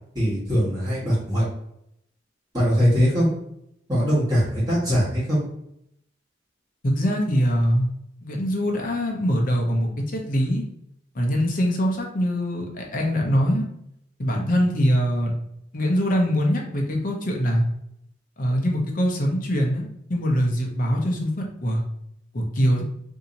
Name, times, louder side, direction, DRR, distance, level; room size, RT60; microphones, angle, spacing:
voice 1, 0.1-1.4 2.5-3.3 3.9-5.4, equal, 20° right, -9 dB, 1.3 m, -21 dB
voice 2, 6.8-7.9 8.2-10.6 11.1-13.7 14.2-15.3 15.7-17.6 18.4-21.8 22.3-22.8, equal, 45° left, 0 dB, 0.8 m, -23 dB
2.8 x 2.7 x 3.9 m, 0.75 s
head